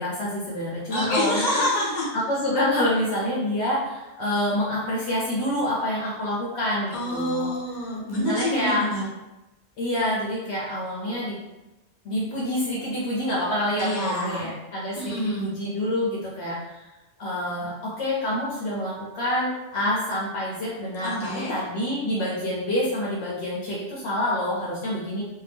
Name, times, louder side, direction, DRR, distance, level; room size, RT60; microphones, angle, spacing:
voice 1, 0.0-1.6 2.1-7.5 8.3-8.9 9.8-11.4 12.0-16.9 17.2-25.2, left 1 dB, 70° left, -6 dB, 0.9 m, -27 dB
voice 2, 0.9-2.1 6.9-9.0 13.8-14.5 15.0-15.5 21.0-21.6, left 1 dB, 45° left, -5 dB, 0.9 m, -27 dB
2.7 x 2.1 x 3.3 m, 1.0 s
omnidirectional pair, 1.2 m